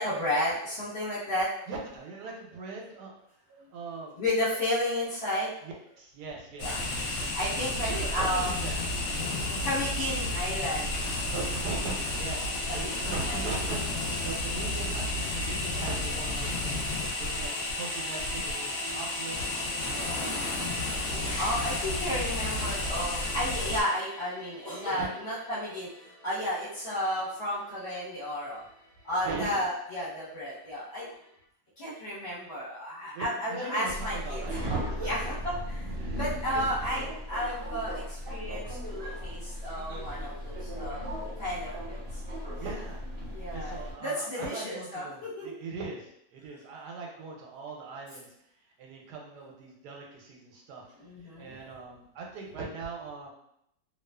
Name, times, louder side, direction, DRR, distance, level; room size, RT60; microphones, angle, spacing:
voice 1, 0.0-1.7 4.2-5.5 6.6-6.8 7.3-8.5 9.6-10.9 12.7-13.5 20.9-25.9 26.2-28.6 29.0-31.1 31.8-34.4 35.0-35.3 35.7-41.0 41.4-42.2 43.3-45.5 51.0-51.8, left 1 dB, 45° left, -10 dB, 1.0 m, -32 dB
voice 2, 1.7-3.2 3.7-4.2 5.6-7.3 7.8-9.8 11.3-19.4 19.7-20.3 24.9-25.1 29.2-29.6 32.7-35.3 36.0-36.2 36.5-37.0 40.7-41.1 42.6-43.0 43.5-48.3 48.8-50.8 51.2-53.3, right 3 dB, 85° right, 0 dB, 1.2 m, -40 dB
sound 1, 6.6-23.8, left 2 dB, 70° left, 1.0 m, -32 dB
sound 2, 12.1-31.0 31.2-31.4, equal, 15° right, 0.7 m, -44 dB
Subway metro underground, 33.9-43.9, equal, 45° right, 0.8 m, -37 dB
2.6 x 2.4 x 2.2 m, 0.75 s
omnidirectional pair, 1.7 m